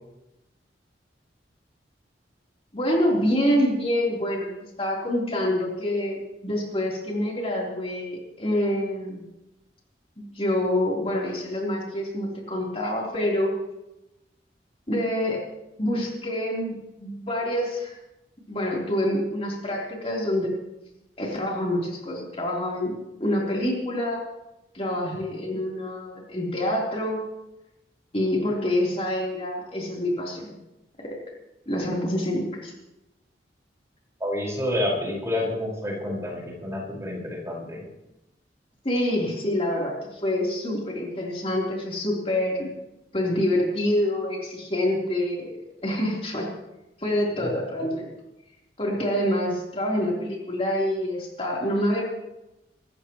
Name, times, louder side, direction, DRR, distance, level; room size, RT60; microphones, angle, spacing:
voice 1, 2.7-4.5 4.8-6.2 6.4-9.2 10.3-13.5 14.9-15.4 15.8-18.0 18.5-20.5 21.2-24.3 24.7-27.2 28.1-30.5 31.0-31.2 31.7-32.7 38.8-42.8 43.1-46.5 47.0-48.1 48.8-52.0, left 1 dB, 35° left, -3 dB, 3.7 m, -26 dB
voice 2, 34.2-37.9, left 1 dB, 15° right, -3 dB, 5.1 m, -29 dB
26.0 x 14.0 x 3.1 m, 0.95 s
head